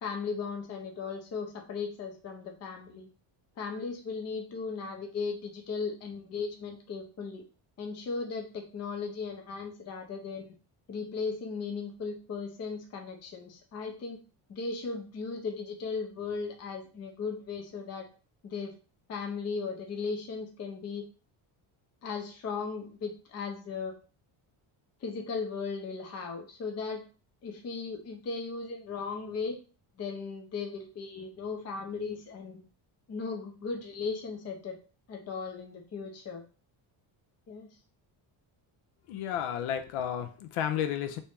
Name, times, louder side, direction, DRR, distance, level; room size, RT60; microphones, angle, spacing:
voice 1, 0.0-3.1 3.6-7.4 7.8-10.5 10.9-14.2 14.5-18.1 18.4-18.7 19.1-21.1 22.0-23.9 25.0-27.0 27.4-29.6 30.0-32.6 33.1-34.8 35.1-36.4 37.5-37.7, left 4 dB, 30° left, 3 dB, 0.5 m, -37 dB
voice 2, 39.1-41.2, left 9 dB, 75° left, 7 dB, 0.6 m, -32 dB
2.9 x 2.7 x 3.4 m, 0.36 s
cardioid pair, 175°, 50 cm